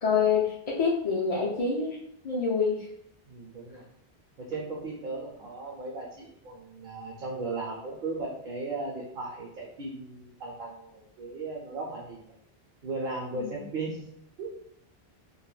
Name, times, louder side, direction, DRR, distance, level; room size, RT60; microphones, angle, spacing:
voice 1, 0.0-2.9 13.3-13.6, left 5 dB, 50° left, -4 dB, 0.4 m, -27 dB
voice 2, 3.3-3.8 4.4-12.2 12.8-14.1 14.4-14.5, right 3 dB, 60° right, -2 dB, 0.7 m, -36 dB
2.3 x 2.1 x 3.1 m, 0.74 s
omnidirectional pair, 1.0 m